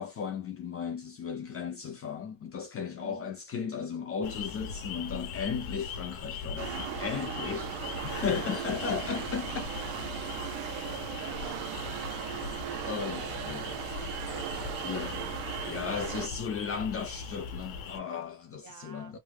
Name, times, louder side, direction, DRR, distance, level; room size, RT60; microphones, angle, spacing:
voice 1, 0.0-7.7 8.0-9.6 12.9-13.7 14.8-15.2 15.6-19.2, left 6 dB, 30° left, 0.4 m, -35 dB
voice 2, 3.0-3.3 7.6-8.5 8.8-9.2 10.2-10.3 10.7-17.0 17.4-18.1 18.6-19.2, right 5 dB, 40° right, 0.9 m, -52 dB
sound 1, 4.2-18.0, left 5 dB, 75° left, 1.0 m, -40 dB
sound 2, 6.6-16.3, right 10 dB, 75° right, 0.7 m, -37 dB
3.1 x 2.0 x 3.3 m
cardioid pair, 165°, 48 cm